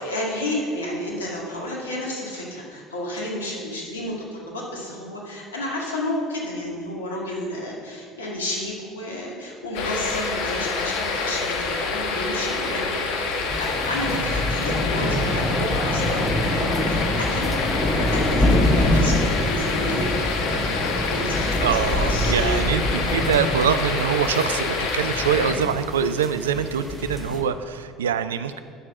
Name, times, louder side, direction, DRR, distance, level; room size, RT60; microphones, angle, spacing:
voice 1, 0.0-16.2 16.5-17.5 18.1-20.3 21.1-22.6, left 1 dB, 85° left, -3 dB, 1.9 m, -31 dB
sound 1, 9.7-25.5, left 4 dB, 65° left, 1.2 m, -27 dB
sound 2, 13.5-27.4, left 1 dB, 15° left, 1.7 m, -25 dB
voice 2, 21.6-28.6, right 8 dB, 80° right, 12 dB, 0.4 m, -24 dB
8.8 x 6.3 x 6.1 m, 2.2 s
figure-of-eight pair, 65°, 0 cm